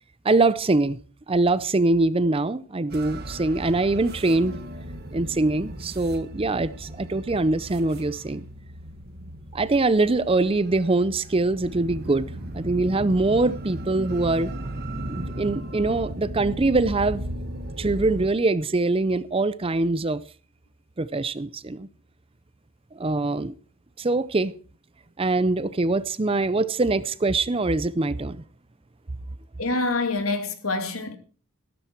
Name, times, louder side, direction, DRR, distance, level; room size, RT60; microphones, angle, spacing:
voice 1, 0.2-1.0 1.3-4.6 5.1-8.5 9.5-14.5 15.1-17.2 17.8-20.2 21.0-21.9 22.9-23.5 24.0-24.5 25.2-28.4, right 2 dB, 25° right, 0.5 m, -23 dB
sound 1, 2.9-18.3, right 1 dB, 50° right, 1.6 m, -36 dB
voice 2, 29.6-31.2, left 3 dB, 80° left, 2.2 m, -26 dB
13.5 x 13.0 x 4.5 m
head